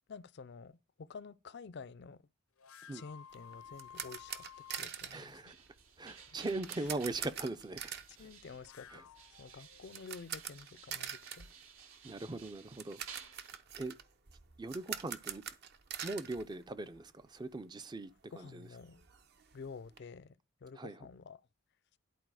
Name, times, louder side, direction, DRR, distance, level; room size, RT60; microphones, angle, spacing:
voice 1, 0.1-2.2 2.9-5.4 6.7-6.9 8.2-9.0 9.4-11.5 18.3-19.0 19.5-21.4, left 5 dB, 50° left, 0.4 m, -50 dB
sound 1, 2.6-4.9 8.4-10.1, left 8 dB, 90° left, 0.7 m, -54 dB
sound 2, 3.3-17.3 17.5-17.7 18.1-18.2 18.4-20.0, right 8 dB, 50° right, 0.7 m, -46 dB
sound 3, 4.3-8.7 9.2-13.6, right 7 dB, 75° right, 1.6 m, -56 dB
voice 2, 5.1-5.6 6.0-7.9 8.9-9.0 12.0-13.0 13.8-13.9 14.6-15.4 16.0-18.7 20.8-21.0, right 2 dB, 20° right, 0.4 m, -40 dB
11.0 x 4.2 x 4.7 m
head